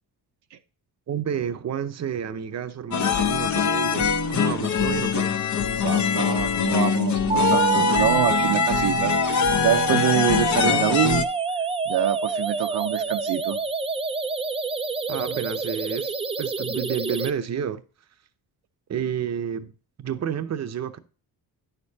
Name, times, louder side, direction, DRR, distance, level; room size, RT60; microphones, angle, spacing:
voice 1, 1.1-5.4 15.1-17.8 18.9-19.7 20.0-21.0, right 8 dB, 40° right, 0.8 m, -30 dB
sound 1, 2.9-11.2, left 7 dB, 45° left, 0.8 m, -23 dB
voice 2, 5.8-11.2 11.8-13.6, right 11 dB, 70° right, 0.8 m, -25 dB
sound 2, 7.3-17.3, right 4 dB, 15° right, 0.4 m, -27 dB
9.6 x 6.7 x 2.8 m
cardioid pair, 100°, 41 cm